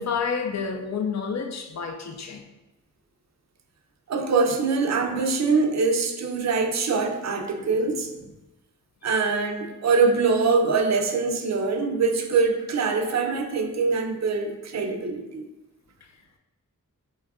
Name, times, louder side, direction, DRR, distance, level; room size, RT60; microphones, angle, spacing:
voice 1, 0.0-2.4 9.1-9.3 16.0-16.1, left 6 dB, 55° left, 5 dB, 0.4 m, -29 dB
voice 2, 4.1-8.1 9.0-15.4, right 4 dB, 55° right, 4 dB, 0.4 m, -23 dB
2.6 x 2.4 x 3.4 m, 1.0 s
wide cardioid pair, 75°, 33 cm